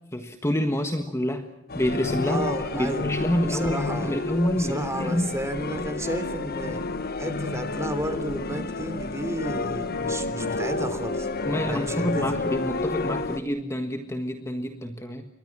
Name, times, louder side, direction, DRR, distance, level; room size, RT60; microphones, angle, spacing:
voice 1, 0.1-1.5 1.7-5.3 11.4-15.3, equal, 15° left, 6 dB, 1.5 m, -27 dB
sound 1, 1.7-13.4, left 3 dB, 50° left, 1.4 m, -30 dB
voice 2, 2.3-3.1 3.4-4.1 4.5-6.8 7.2-11.3 11.7-12.2, right 1 dB, 15° right, 9 dB, 3.4 m, -32 dB
30.0 x 24.0 x 6.1 m, 0.86 s
head